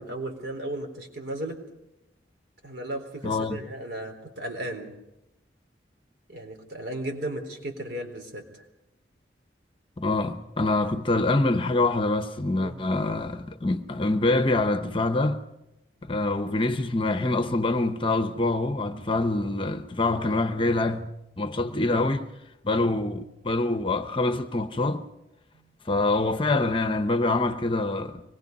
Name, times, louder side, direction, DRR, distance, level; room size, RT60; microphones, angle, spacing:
voice 1, 0.0-1.6 2.6-4.9 6.3-8.6 12.6-12.8 25.5-25.8, right 1 dB, 65° right, 4.1 m, -35 dB
voice 2, 3.2-3.6 10.0-15.4 16.0-21.1 21.4-22.2 22.6-25.0 25.9-28.2, left 2 dB, 30° left, 0.9 m, -25 dB
25.0 x 21.0 x 5.4 m
head